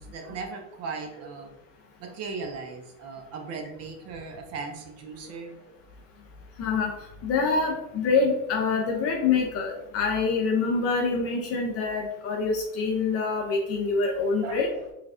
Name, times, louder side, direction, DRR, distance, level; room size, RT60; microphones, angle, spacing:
voice 1, 0.0-1.5 2.0-5.8 14.4-14.9, right 4 dB, 35° right, 3 dB, 0.6 m, -38 dB
voice 2, 6.6-6.9 7.2-14.7, left 4 dB, 35° left, 1 dB, 0.4 m, -25 dB
4.6 x 2.3 x 2.5 m, 0.89 s
supercardioid pair, 120°, 48 cm